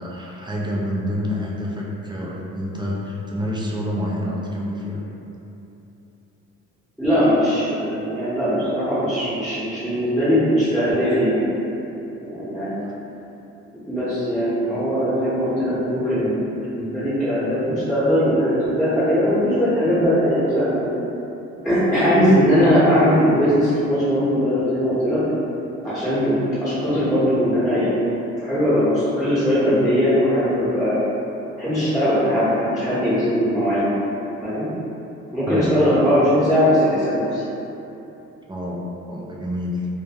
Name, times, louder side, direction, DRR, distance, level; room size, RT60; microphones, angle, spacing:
voice 1, 0.0-5.0 12.8-12.9 35.5-35.8 38.5-38.8 39.1-39.9, left 1 dB, 15° right, -4 dB, 0.3 m, -28 dB
voice 2, 7.0-11.4 12.2-12.7 13.9-16.4 16.7-20.9 21.6-25.2 25.8-26.3 26.6-28.0 28.4-30.9 31.6-33.9 34.4-34.7 35.3-37.4, equal, ahead, -13 dB, 0.8 m, -20 dB
2.1 x 2.1 x 3.3 m, 2.9 s
cardioid pair, 90°, 30 cm